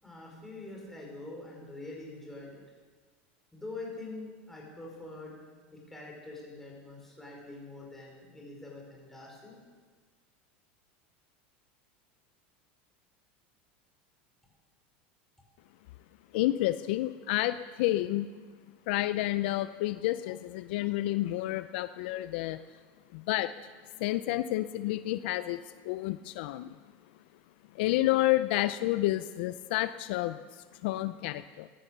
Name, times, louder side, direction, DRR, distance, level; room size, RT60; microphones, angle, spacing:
voice 1, 0.0-2.6 3.5-5.4 5.7-9.6, left 2 dB, 5° left, -3 dB, 5.4 m, -44 dB
voice 2, 16.3-18.4 18.9-22.6 23.1-23.5 24.0-26.8 27.7-31.7, left 16 dB, 70° left, 13 dB, 0.5 m, -30 dB
16.5 x 11.0 x 6.8 m, 1.5 s
supercardioid pair, 120°, 6 cm